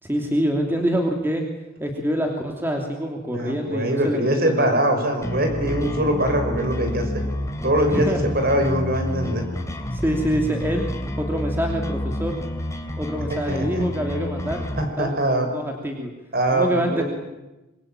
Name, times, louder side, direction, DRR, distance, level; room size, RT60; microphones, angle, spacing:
voice 1, 0.0-1.4 1.8-4.7 7.9-8.2 9.9-10.9 11.2-12.4 13.0-14.6 15.0-15.1 15.5-16.1 16.5-17.0, equal, 10° right, 2 dB, 2.8 m, -25 dB
voice 2, 3.3-7.2 7.6-9.4 13.3-13.9 14.8-15.5 16.3-17.0, right 1 dB, 45° right, 5 dB, 5.6 m, -22 dB
sound 1, 5.2-14.8, left 1 dB, 15° left, 3.0 m, -29 dB
26.0 x 23.0 x 9.0 m, 1.0 s
head